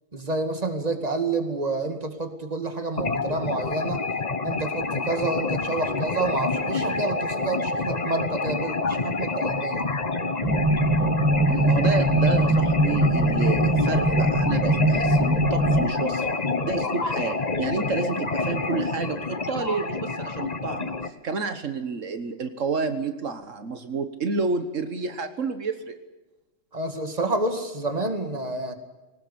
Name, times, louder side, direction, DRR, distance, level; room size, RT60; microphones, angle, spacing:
voice 1, 0.1-4.0 4.4-9.9 11.5-11.7 26.7-28.8, right 2 dB, 30° right, 7 dB, 2.4 m, -29 dB
sound 1, 3.0-21.1, left 3 dB, 35° left, 1.3 m, -27 dB
sound 2, 10.4-15.8, right 1 dB, 15° right, 1.4 m, -22 dB
voice 2, 11.5-16.4 16.6-26.0, right 4 dB, 80° right, 9 dB, 1.7 m, -30 dB
20.5 x 19.0 x 8.6 m, 1.1 s
omnidirectional pair, 1.3 m